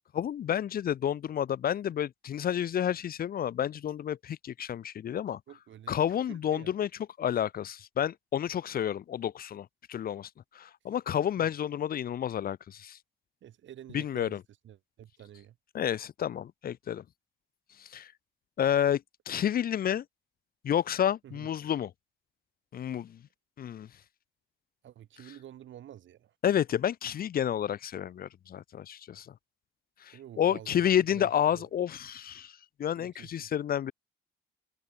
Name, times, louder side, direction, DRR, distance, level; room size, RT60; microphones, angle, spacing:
voice 1, 0.1-5.4 5.9-6.9 7.2-10.3 10.5-13.0 13.9-14.4 15.7-17.0 17.8-18.1 18.6-20.0 20.6-21.9 22.7-23.2 23.6-23.9 26.4-29.3 30.0-32.5 32.8-33.9, left 10 dB, 50° left, 0.6 m, -30 dB
voice 2, 5.5-6.0 6.3-6.7 11.4-11.6 13.4-14.4 14.6-15.6 21.2-21.5 24.8-26.3 30.1-31.7 33.0-33.5, right 11 dB, 70° right, 5.3 m, -49 dB
cardioid pair, 90°, 20 cm